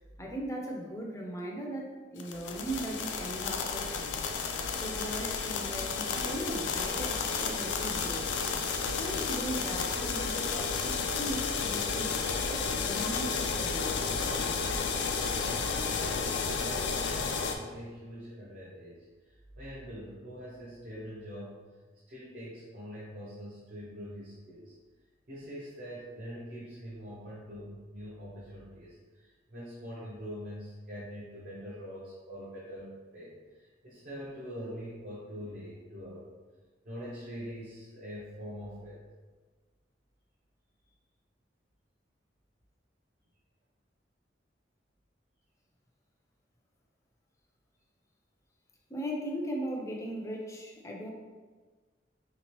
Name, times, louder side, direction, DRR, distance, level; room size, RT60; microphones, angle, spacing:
voice 1, 0.2-4.2 4.8-8.3 9.0-12.2 12.5-14.1 48.9-51.1, equal, 15° left, 0 dB, 0.5 m, -38 dB
sound 1, 2.2-17.5, left 5 dB, 70° left, 0.4 m, -32 dB
voice 2, 15.6-16.1 16.6-21.6 22.1-24.7 25.3-36.3 36.8-39.0, equal, 55° right, -7 dB, 0.7 m, -44 dB
3.5 x 3.0 x 3.0 m, 1.4 s
head